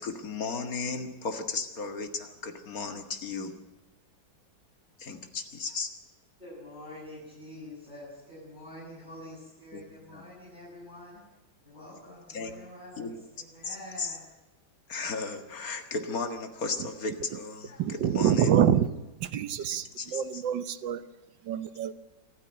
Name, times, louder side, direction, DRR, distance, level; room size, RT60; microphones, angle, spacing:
voice 1, 0.0-3.5 5.0-5.9 9.7-9.8 10.1-10.3 12.3-12.6 12.9-13.2 13.6-14.1 14.9-18.6 19.3-20.4, left 4 dB, 45° left, 6 dB, 2.1 m, -35 dB
voice 2, 6.4-11.2 11.6-14.2, left 1 dB, 20° left, -8 dB, 7.5 m, -46 dB
voice 3, 17.8-18.9 19.2-19.9 20.1-21.0 21.5-21.9, right 9 dB, 70° right, 13 dB, 1.6 m, -25 dB
27.0 x 9.9 x 9.8 m, 1.1 s
omnidirectional pair, 2.2 m